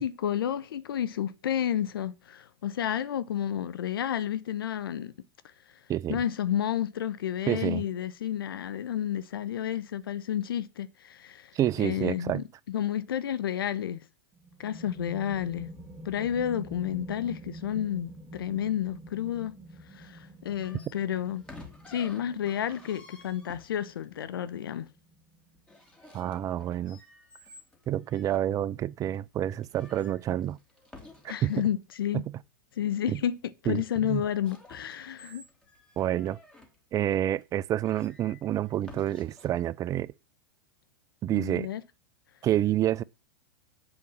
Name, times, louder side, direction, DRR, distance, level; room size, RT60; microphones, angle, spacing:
voice 1, 0.0-5.1 6.1-14.0 14.6-15.7 16.0-19.6 19.9-21.4 21.9-24.9 31.3-32.2 32.8-33.4 33.6-35.4 41.3-41.8, left 10 dB, 75° left, 0.7 m, -31 dB
voice 2, 5.9-6.2 7.5-7.8 11.5-12.4 26.1-27.0 27.9-30.6 31.4-31.7 32.1-32.2 33.1-33.2 33.7-34.2 36.0-36.4 36.9-40.1 41.2-41.7 42.4-43.0, right 12 dB, 30° right, 0.4 m, -28 dB
sound 1, 14.3-25.7, right 1 dB, 10° right, 2.0 m, -47 dB
sound 2, 20.6-24.0 25.5-28.4 29.1-29.2 29.5-31.8 34.3-36.8 37.4-37.5 37.8-39.5, left 2 dB, 5° left, 2.6 m, -52 dB
7.9 x 5.3 x 7.4 m
hypercardioid pair, 105°, 12 cm